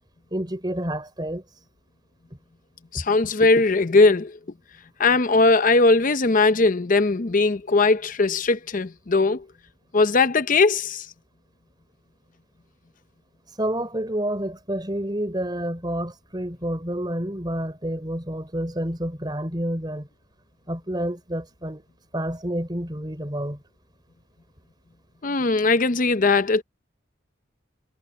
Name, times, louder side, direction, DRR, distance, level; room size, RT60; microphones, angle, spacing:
voice 1, 0.3-1.6 2.9-3.0 13.5-20.1 20.7-21.8 22.1-23.6, right 1 dB, 20° right, 4.3 m, -29 dB
voice 2, 2.9-4.4 5.0-9.5 9.9-11.1 25.2-26.6, left 3 dB, 40° left, 0.7 m, -19 dB
head